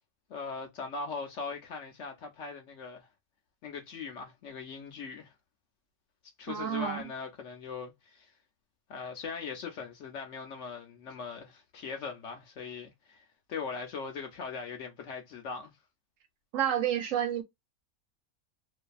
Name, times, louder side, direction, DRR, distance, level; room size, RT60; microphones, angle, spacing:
voice 1, 0.3-3.1 3.6-5.3 6.4-8.3 8.9-15.7, left 5 dB, 65° left, 0.8 m, -40 dB
voice 2, 6.5-7.0 16.5-17.4, right 10 dB, 70° right, 0.8 m, -29 dB
2.6 x 2.4 x 2.3 m
omnidirectional pair, 1.6 m